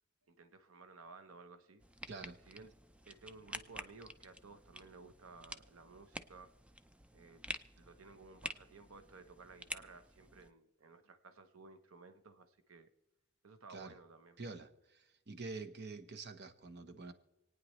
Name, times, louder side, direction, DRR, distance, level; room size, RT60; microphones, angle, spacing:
voice 1, 0.3-1.8 2.4-2.7 3.1-6.5 7.1-7.4 7.8-12.9 13.4-14.4, right 4 dB, 80° right, 0.9 m, -56 dB
sound 1, 1.8-10.5, right 1 dB, 5° right, 0.4 m, -49 dB
voice 2, 2.1-2.4 13.7-13.9 14.4-17.1, right 3 dB, 50° right, 1.0 m, -47 dB
28.0 x 9.4 x 3.1 m
head